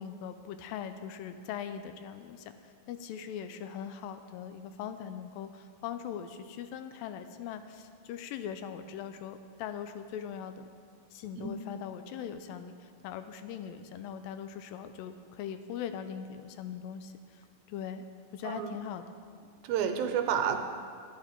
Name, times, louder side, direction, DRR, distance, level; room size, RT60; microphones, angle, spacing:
voice 1, 0.0-10.7 11.1-18.0 18.3-19.1, left 8 dB, 80° left, 9 dB, 2.2 m, -41 dB
voice 2, 18.4-18.8 19.6-20.6, right 8 dB, 85° right, 6 dB, 2.6 m, -30 dB
11.0 x 11.0 x 4.5 m, 2.1 s
omnidirectional pair, 4.2 m